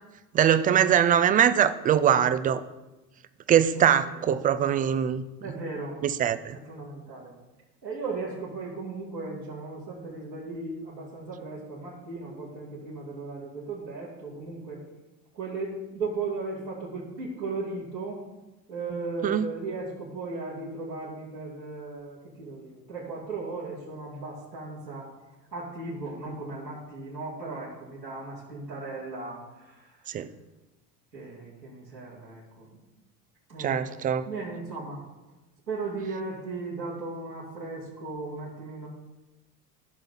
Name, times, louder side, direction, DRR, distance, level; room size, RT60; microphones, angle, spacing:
voice 1, 0.3-2.6 3.5-5.2 6.0-6.6 19.2-19.5 30.1-30.3 33.6-34.2, right 9 dB, 20° right, 14 dB, 0.4 m, -22 dB
voice 2, 3.7-4.2 5.4-6.0 6.5-7.3 7.8-14.8 15.3-18.2 18.7-25.1 25.5-30.1 31.1-32.8 33.5-33.9 34.2-35.0 35.7-38.9, right 3 dB, 90° right, -9 dB, 3.2 m, -36 dB
15.0 x 6.4 x 4.0 m, 1.1 s
figure-of-eight pair, 70°, 49 cm